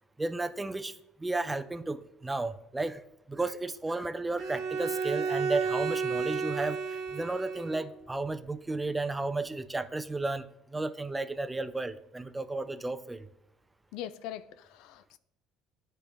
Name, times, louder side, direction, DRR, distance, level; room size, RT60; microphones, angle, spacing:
voice 1, 0.2-3.0 3.3-13.3, right 2 dB, 15° right, 0.4 m, -33 dB
Bowed string instrument, 4.4-7.9, right 5 dB, 70° right, 0.9 m, -32 dB
voice 2, 13.9-15.2, left 11 dB, 75° left, 0.4 m, -41 dB
10.0 x 3.3 x 3.5 m
supercardioid pair, 95°, 0 cm